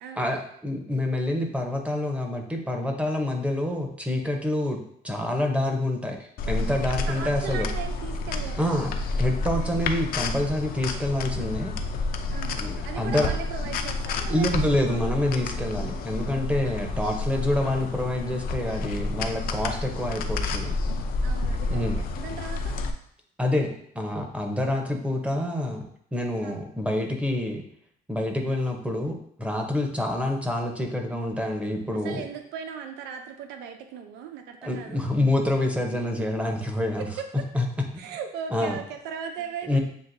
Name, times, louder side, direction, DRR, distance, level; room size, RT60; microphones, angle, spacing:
voice 1, 0.2-4.8 5.0-7.7 8.6-11.7 12.6-13.3 14.3-20.7 21.7-22.0 23.4-25.8 26.1-27.6 28.1-32.2 34.6-37.0 37.5-37.7 38.5-38.8 39.7-39.8, left 1 dB, 5° right, 2 dB, 0.8 m, -27 dB
sound 1, 6.4-22.9, left 3 dB, 60° left, 0.5 m, -30 dB
voice 2, 7.1-8.7 12.3-15.2 16.6-16.7 21.2-22.8 26.4-26.6 31.9-35.0 36.2-36.3 37.0-37.5 38.0-39.8, right 7 dB, 85° right, 6 dB, 0.5 m, -38 dB
7.3 x 2.6 x 2.6 m, 0.67 s
cardioid pair, 110°, 17 cm